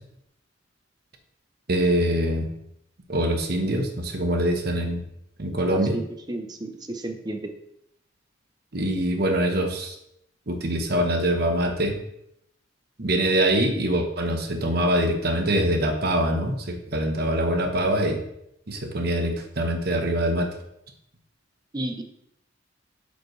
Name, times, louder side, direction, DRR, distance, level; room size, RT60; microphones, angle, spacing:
voice 1, 1.7-2.5 3.1-5.0 5.4-6.0 8.7-9.9 10.5-12.0 13.0-18.2 18.7-20.5, right 1 dB, 55° right, 4 dB, 1.1 m, -24 dB
voice 2, 5.6-6.0 6.3-7.5 21.7-22.0, right 1 dB, 20° right, 5 dB, 0.7 m, -32 dB
8.2 x 5.2 x 3.3 m, 0.77 s
head